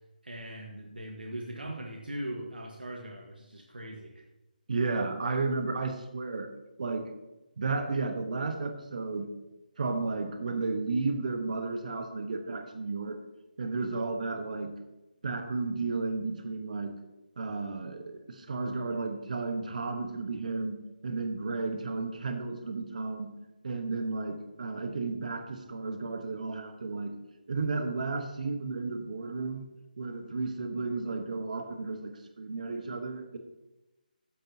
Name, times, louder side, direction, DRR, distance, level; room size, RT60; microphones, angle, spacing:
voice 1, 0.2-4.2, right 1 dB, 75° right, 1 dB, 1.5 m, -40 dB
voice 2, 4.7-6.5 6.8-7.1 7.6-9.3 9.8-13.2 13.6-14.7 15.2-16.9 17.4-20.8 21.0-23.3 23.6-27.1 27.5-29.7 30.0-33.4, right 3 dB, 55° right, 6 dB, 1.2 m, -33 dB
14.5 x 9.2 x 2.8 m, 1.1 s
figure-of-eight pair, 150°, 5 cm